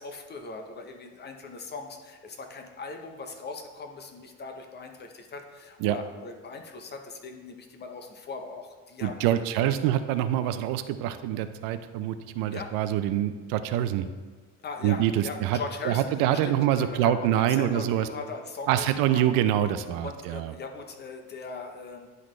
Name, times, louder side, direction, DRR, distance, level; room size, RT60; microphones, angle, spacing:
voice 1, 0.0-9.3 9.6-9.8 12.5-12.7 14.6-16.1 16.4-19.3 20.0-22.1, left 4 dB, 30° left, 4 dB, 0.8 m, -39 dB
voice 2, 9.0-14.1 14.8-15.6 15.8-18.1 18.7-20.5, right 11 dB, 85° right, 11 dB, 0.5 m, -25 dB
10.5 x 4.1 x 3.2 m, 1.4 s
cardioid pair, 120°, 33 cm